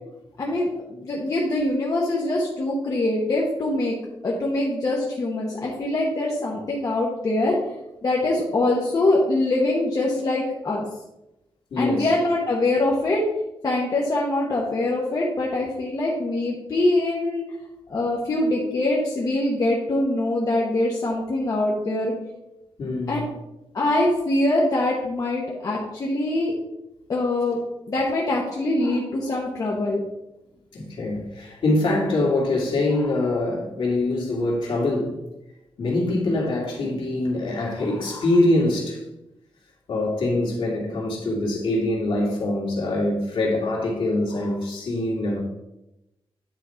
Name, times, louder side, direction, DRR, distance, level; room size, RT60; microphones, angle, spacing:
voice 1, 0.4-3.9 4.2-7.5 8.0-10.8 11.8-13.2 13.6-17.4 17.9-22.1 23.1-23.3 23.7-26.5 27.1-27.6 27.9-30.0, left 2 dB, 35° left, -4 dB, 1.1 m, -23 dB
voice 2, 11.7-12.1 22.8-23.3 28.8-29.0 30.7-35.2 35.8-39.0 39.9-45.4, left 2 dB, 60° left, -3 dB, 2.3 m, -24 dB
9.8 x 4.2 x 4.4 m, 0.92 s
wide cardioid pair, 170°, 10 cm